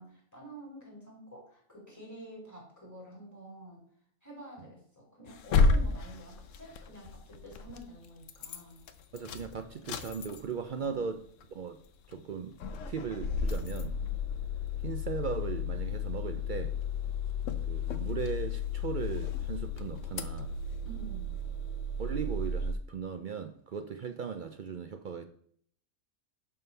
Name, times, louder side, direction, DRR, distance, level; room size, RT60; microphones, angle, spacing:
voice 1, 0.0-3.8 4.2-8.8 10.8-11.2 20.8-21.3, right 1 dB, 10° left, 3.0 m, -48 dB
sound 1, 5.3-7.8 8.2-8.6 8.9-10.7 11.0-11.1 11.4-11.5 12.1-12.3 12.6-22.7, left 4 dB, 70° left, 1.0 m, -32 dB
voice 2, 9.1-11.2 11.5-11.8 12.1-12.5 12.9-14.0 14.8-16.7 17.7-20.5 22.0-25.3, right 6 dB, 65° right, 0.5 m, -37 dB
11.0 x 3.7 x 5.5 m
omnidirectional pair, 1.4 m